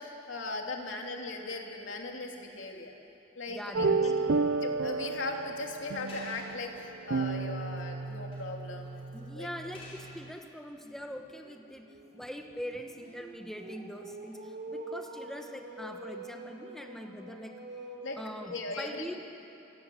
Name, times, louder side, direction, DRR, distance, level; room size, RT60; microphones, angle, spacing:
voice 1, 0.0-2.9 3.4-4.1 4.6-8.9 9.3-9.5 18.0-18.2 18.5-19.2, left 3 dB, 80° left, 1 dB, 2.9 m, -38 dB
voice 2, 3.5-4.4 9.1-11.9 12.1-17.5 18.2-19.2, equal, ahead, 4 dB, 1.4 m, -42 dB
sound 1, 3.7-10.3, right 4 dB, 80° right, 0.6 m, -32 dB
sound 2, 5.3-5.5 6.1-6.8 8.1-8.6 8.9-9.0 9.7-10.2 10.7-11.4 13.0-13.5, left 2 dB, 30° left, 6.0 m, -52 dB
sound 3, 7.4-7.6 8.0-8.1 8.5-8.6 10.7-18.6, right 2 dB, 50° right, 3.2 m, -46 dB
26.5 x 17.5 x 8.5 m, 2.9 s
head